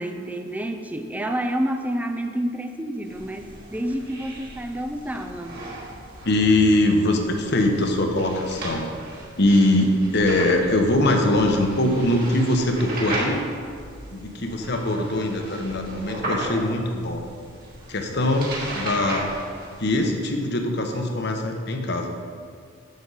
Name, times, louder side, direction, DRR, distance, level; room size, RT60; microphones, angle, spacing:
voice 1, 0.0-5.6, right 1 dB, 10° right, 6 dB, 0.5 m, -29 dB
sound 1, 3.0-20.0, right 1 dB, 45° right, 2.2 m, -36 dB
voice 2, 6.2-8.9 9.4-13.4 14.1-17.2 17.9-19.3 19.8-22.1, left 1 dB, 55° left, 3 dB, 1.1 m, -22 dB
10.5 x 7.8 x 4.1 m, 2.3 s
head